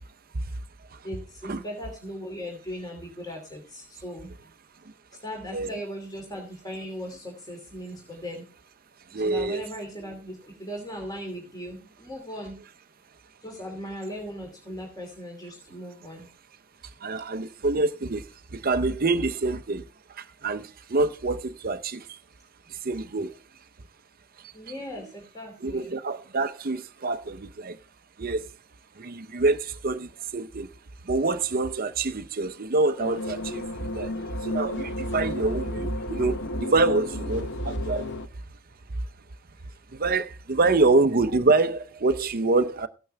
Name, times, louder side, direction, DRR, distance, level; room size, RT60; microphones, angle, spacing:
voice 1, 1.0-4.3 5.2-8.5 9.2-12.6 13.4-16.3 24.5-25.9 40.6-40.9, equal, 15° left, 2.8 m, -38 dB
voice 2, 9.1-9.6 17.0-18.2 18.5-19.8 20.2-22.0 22.8-23.3 25.6-27.8 28.2-28.5 29.0-30.7 31.1-33.6 33.9-34.1 34.4-38.1 39.9-42.9, right 3 dB, 40° right, 0.6 m, -26 dB
sound 1, 33.0-38.3, left 2 dB, 55° left, 0.8 m, -33 dB
15.5 x 9.1 x 3.4 m
head